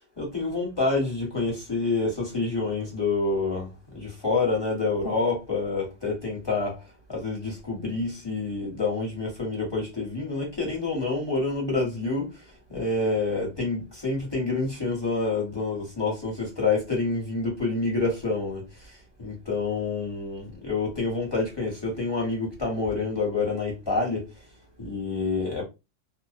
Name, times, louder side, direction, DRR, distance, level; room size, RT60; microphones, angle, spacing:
voice 1, 0.2-6.8 7.1-12.4 12.7-24.3 24.8-25.6, left 3 dB, 20° left, 1.1 m, -28 dB
2.5 x 2.1 x 2.5 m
omnidirectional pair, 1.2 m